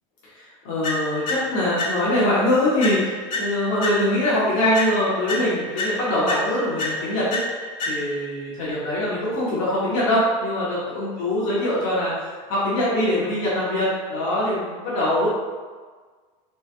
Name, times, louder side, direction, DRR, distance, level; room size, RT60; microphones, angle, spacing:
voice 1, 0.3-3.0 3.3-7.4 7.9-12.1 12.5-15.3, left 1 dB, 75° left, -8 dB, 1.2 m, -23 dB
sound 1, 0.8-2.3 2.8-4.3 4.7-8.3, left 1 dB, 50° left, 0.8 m, -30 dB
3.3 x 2.3 x 3.2 m, 1.5 s
supercardioid pair, 105°, 18 cm